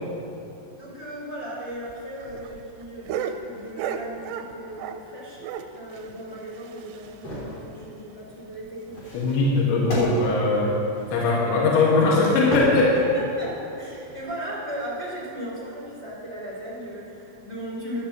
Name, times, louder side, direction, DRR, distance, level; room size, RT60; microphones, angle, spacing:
voice 1, 0.8-5.4 5.7-9.2 12.4-12.5 12.8-13.5 13.8-18.1, right 1 dB, 5° left, -8 dB, 1.4 m, -36 dB
sound 1, 1.7-5.1 5.4-7.4 7.7-7.8 8.1-8.2 8.6-8.7 9.3-9.5 10.4-10.5, right 8 dB, 90° right, 3.2 m, -35 dB
sound 2, 7.0-7.6 8.9-11.4 12.3-13.5 14.0-14.2, equal, 35° left, 3.5 m, -32 dB
voice 2, 9.1-10.7 11.1-12.9, left 3 dB, 70° left, -5 dB, 3.8 m, -20 dB
15.0 x 13.5 x 3.0 m, 2.7 s
omnidirectional pair, 5.8 m